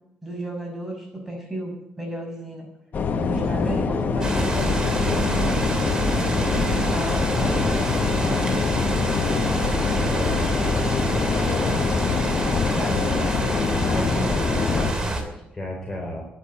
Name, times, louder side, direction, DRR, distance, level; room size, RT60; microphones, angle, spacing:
voice 1, 0.2-2.7 3.2-5.6 6.3-9.3 12.8-13.5 13.8-15.2, right 1 dB, 5° right, 0 dB, 6.2 m, -33 dB
sound 1, 2.9-14.9, left 5 dB, 55° left, 1.2 m, -24 dB
sound 2, 4.2-15.2, right 2 dB, 20° right, 2.8 m, -27 dB
voice 2, 6.2-6.7 9.7-11.8 12.4-12.7 13.7-14.0 14.8-16.3, left 1 dB, 15° left, -1 dB, 3.9 m, -33 dB
11.0 x 10.0 x 9.6 m, 0.81 s
cardioid pair, 100°, 4 cm